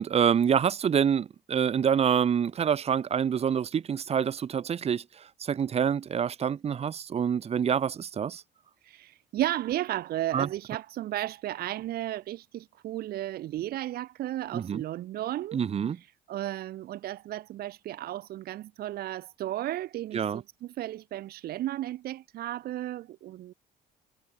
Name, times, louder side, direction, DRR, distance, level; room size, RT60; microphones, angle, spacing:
voice 1, 0.0-8.4 10.3-10.5 14.5-14.8 15.5-16.0 20.1-20.4, right 8 dB, 35° right, 1.0 m, -26 dB
voice 2, 8.8-15.6 16.3-23.5, right 14 dB, 65° right, 1.0 m, -34 dB
cardioid pair, 110°, 17 cm